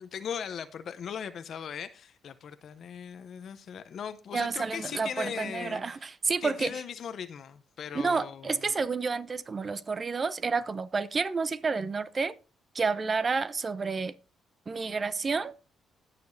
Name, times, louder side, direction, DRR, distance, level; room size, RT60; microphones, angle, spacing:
voice 1, 0.0-5.8 6.4-8.6, left 7 dB, 60° left, 0.7 m, -38 dB
voice 2, 4.3-6.7 7.9-12.3 12.7-14.1 14.7-15.5, right 4 dB, 35° right, 0.7 m, -30 dB
19.5 x 6.7 x 2.7 m
cardioid pair, 90°, 0 cm